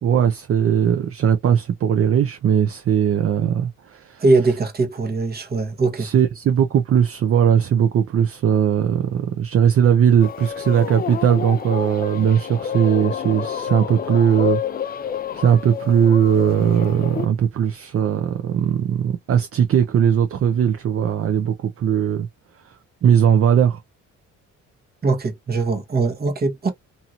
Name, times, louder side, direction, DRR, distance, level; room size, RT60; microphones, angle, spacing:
voice 1, 0.0-4.2 6.0-14.6 15.3-22.3 22.6-22.7 23.0-23.8, right 8 dB, 50° right, 0.6 m, -19 dB
voice 2, 4.2-6.1 25.0-26.7, right 3 dB, 30° right, 1.1 m, -21 dB
sound 1, 10.2-17.3, left 8 dB, 30° left, 0.4 m, -29 dB
2.8 x 2.7 x 2.4 m
cardioid pair, 90°, 30 cm